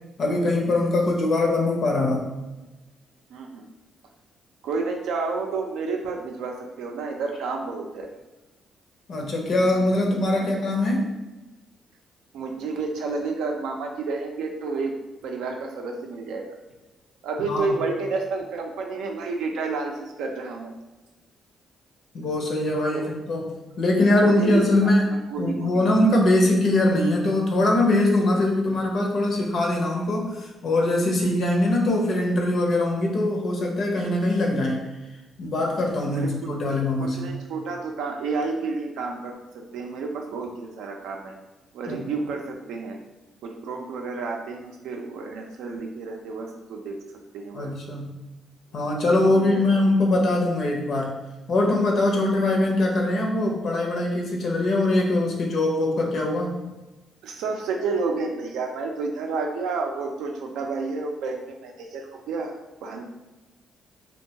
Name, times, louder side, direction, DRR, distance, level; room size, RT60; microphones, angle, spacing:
voice 1, 0.2-2.3 9.1-11.2 17.4-17.7 22.1-34.8 35.4-37.3 41.9-42.0 47.5-48.0 48.7-51.2 51.5-56.5, left 1 dB, 60° left, 0 dB, 0.6 m, -22 dB
voice 2, 3.3-3.7 4.6-8.1 9.5-9.8 10.3-10.5 12.3-14.9 15.2-16.6 17.2-20.7 22.9-23.0 24.2-25.0 25.3-25.8 36.1-36.3 37.0-41.4 41.7-43.0 43.4-47.0 47.3-47.7 49.3-49.8 52.1-52.2 57.2-63.1, right 4 dB, 85° right, 2 dB, 0.4 m, -30 dB
2.6 x 2.2 x 2.7 m, 1.1 s
cardioid pair, 90°, 0 cm